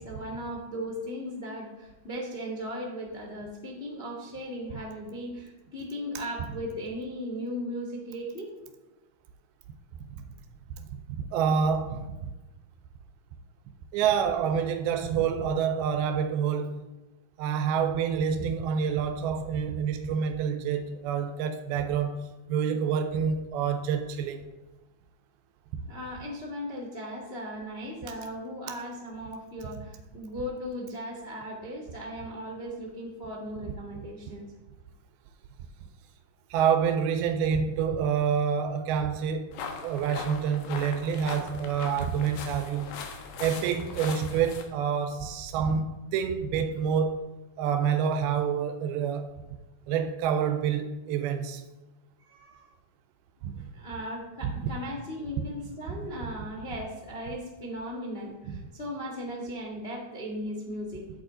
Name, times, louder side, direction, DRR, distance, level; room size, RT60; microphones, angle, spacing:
voice 1, 0.0-8.5 25.9-34.5 52.2-52.7 53.6-61.1, equal, 50° left, 0.7 m, -37 dB
voice 2, 11.3-12.1 13.9-16.9 17.4-24.4 36.5-39.5 39.8-43.0 43.4-47.2 47.6-49.3 49.9-51.6 53.4-53.7 54.4-54.5 58.5-58.6, right 7 dB, 90° right, 2.6 m, -27 dB
sound 1, 39.5-44.6, left 5 dB, 90° left, 3.0 m, -40 dB
9.1 x 8.7 x 3.8 m
omnidirectional pair, 4.3 m